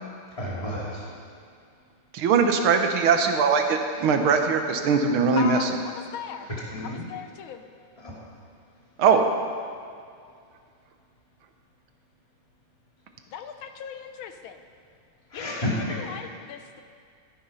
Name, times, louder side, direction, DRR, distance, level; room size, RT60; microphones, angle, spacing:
voice 1, 0.4-1.1 6.5-7.0 8.0-8.1 15.3-16.0, left 1 dB, 15° left, -5 dB, 2.6 m, -31 dB
voice 2, 2.1-5.7 9.0-9.2, right 5 dB, 70° right, 5 dB, 1.9 m, -21 dB
voice 3, 5.4-6.5 6.8-7.6 9.0-9.2 13.3-14.6 15.3-16.8, left 8 dB, 70° left, 8 dB, 1.6 m, -38 dB
13.0 x 11.5 x 5.6 m, 2.3 s
omnidirectional pair, 2.4 m